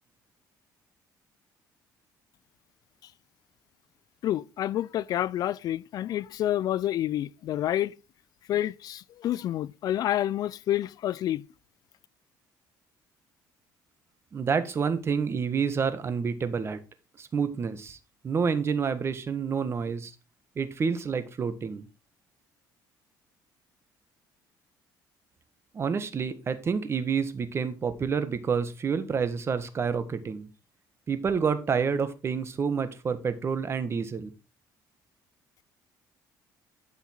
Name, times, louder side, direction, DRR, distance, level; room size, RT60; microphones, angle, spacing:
voice 1, 4.2-7.9 8.5-11.4, left 12 dB, 55° left, 0.4 m, -28 dB
voice 2, 14.3-16.8 17.2-18.0 18.2-20.1 20.5-21.9 25.7-30.5 31.1-34.3, right 6 dB, 35° right, 1.4 m, -28 dB
12.0 x 5.6 x 4.4 m
cardioid pair, 115°, 8 cm